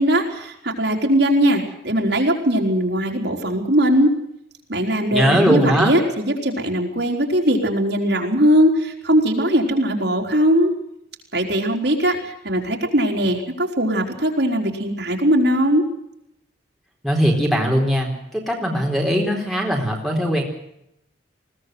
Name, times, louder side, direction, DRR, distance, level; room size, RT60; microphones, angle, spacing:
voice 1, 0.0-4.1 4.7-10.7 11.3-15.8, equal, 60° right, 1 dB, 4.1 m, -20 dB
voice 2, 5.1-5.9 17.0-20.4, equal, ahead, 1 dB, 4.1 m, -20 dB
22.0 x 17.5 x 7.9 m, 0.79 s
head